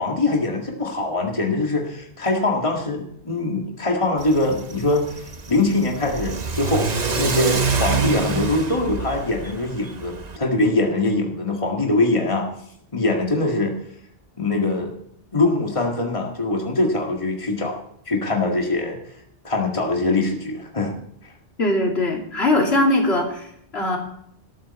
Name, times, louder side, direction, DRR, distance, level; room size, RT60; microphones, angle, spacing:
voice 1, 0.0-6.9 7.2-12.5 12.9-13.8 14.4-14.9 15.3-17.8 18.1-19.0 19.4-20.9 21.2-21.3, left 2 dB, 30° left, 0 dB, 2.1 m, -23 dB
Car / Accelerating revving vroom, 4.2-10.4, right 4 dB, 40° right, 1.1 m, -26 dB
voice 2, 21.6-23.5 23.7-24.0, left 1 dB, 65° left, 0 dB, 3.3 m, -20 dB
19.0 x 13.5 x 4.3 m, 0.72 s
omnidirectional pair, 1.1 m